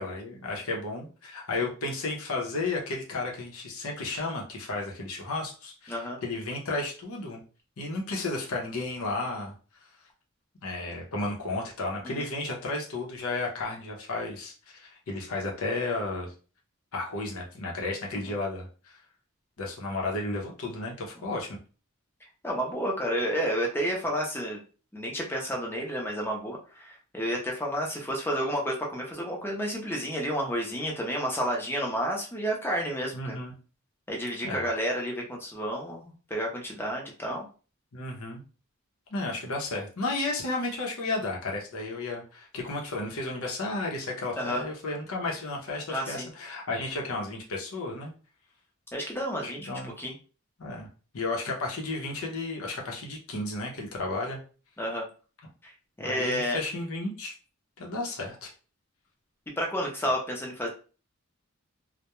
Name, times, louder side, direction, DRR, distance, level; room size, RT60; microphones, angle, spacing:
voice 1, 0.0-7.4 7.8-9.5 10.6-16.3 16.9-19.0 19.6-21.6 33.1-33.5 34.4-34.7 37.9-38.4 39.1-48.1 49.4-49.9 50.6-50.9 51.1-54.4 56.0-57.3 57.8-58.5, left 2 dB, 75° left, 0 dB, 0.7 m, -33 dB
voice 2, 22.4-24.6 24.9-33.4 34.1-37.5 44.4-44.6 45.9-46.3 48.9-50.1 54.8-55.1 55.6-55.7 56.0-56.6 59.6-60.7, equal, 10° left, 0 dB, 0.5 m, -31 dB
2.2 x 2.1 x 2.9 m, 0.37 s
head